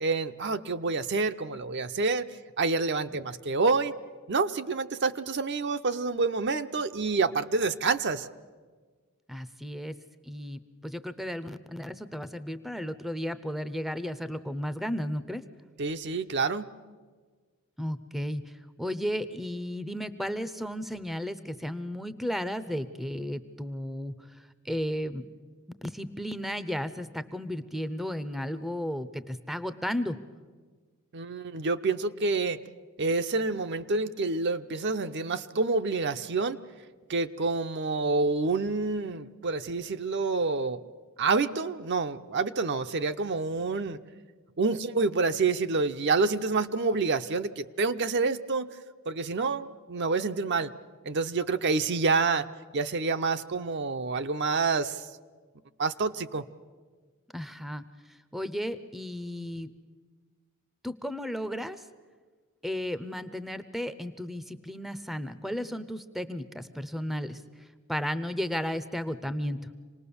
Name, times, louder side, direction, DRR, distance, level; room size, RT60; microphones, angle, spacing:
voice 1, 0.0-2.3 2.6-3.9 4.3-8.3 15.8-16.7 31.1-32.6 33.0-36.6 37.1-40.8 41.2-44.0 44.6-48.7 49.1-50.7 51.0-52.5 52.7-55.0 55.8-56.4, right 4 dB, 50° right, 9 dB, 0.6 m, -28 dB
voice 2, 9.3-9.9 10.2-15.4 17.8-18.5 18.8-25.2 25.8-30.2 57.3-57.8 58.3-59.7 60.8-61.8 62.6-69.6, equal, ahead, 13 dB, 0.6 m, -34 dB
27.0 x 19.5 x 7.0 m, 1.5 s
head